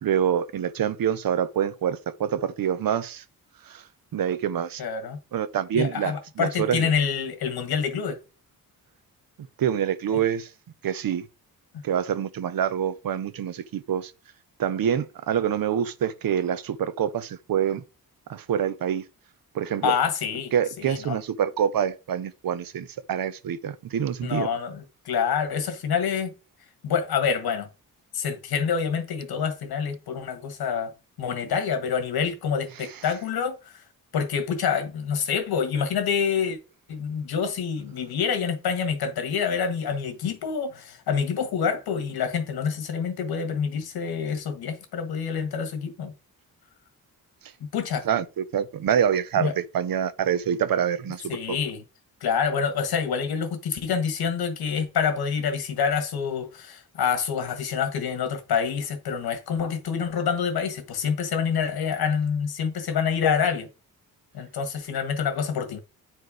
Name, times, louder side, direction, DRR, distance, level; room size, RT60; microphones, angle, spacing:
voice 1, 0.0-3.2 3.7-3.8 4.1-4.8 5.3-6.9 9.6-10.5 10.8-11.3 11.8-14.1 14.6-17.8 18.3-19.0 19.5-20.0 20.5-24.5 48.0-51.6, right 9 dB, 70° right, 0.9 m, -26 dB
voice 2, 4.8-5.2 5.7-8.2 10.1-10.2 19.8-20.5 20.8-21.2 24.2-26.3 26.8-27.7 28.1-30.9 31.2-33.7 34.1-36.6 36.9-46.1 47.6-48.0 49.4-49.5 51.3-51.8 52.2-63.7 64.3-65.8, left 6 dB, 90° left, 1.6 m, -27 dB
9.5 x 4.5 x 4.9 m
cardioid pair, 110°, 36 cm